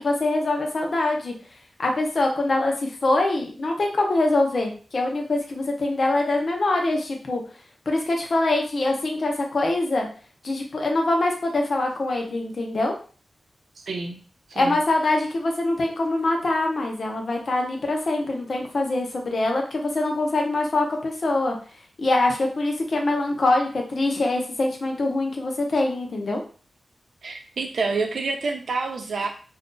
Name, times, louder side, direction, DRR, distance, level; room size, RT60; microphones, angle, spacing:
voice 1, 0.0-1.3 1.8-7.4 7.9-10.1 10.4-12.9 14.6-21.6 22.0-26.4, left 2 dB, 50° left, 2 dB, 0.7 m, -24 dB
voice 2, 13.9-14.2 14.5-14.8 27.2-29.3, right 4 dB, 70° right, 3 dB, 0.6 m, -28 dB
2.6 x 2.4 x 3.7 m, 0.39 s
wide cardioid pair, 160°, 0 cm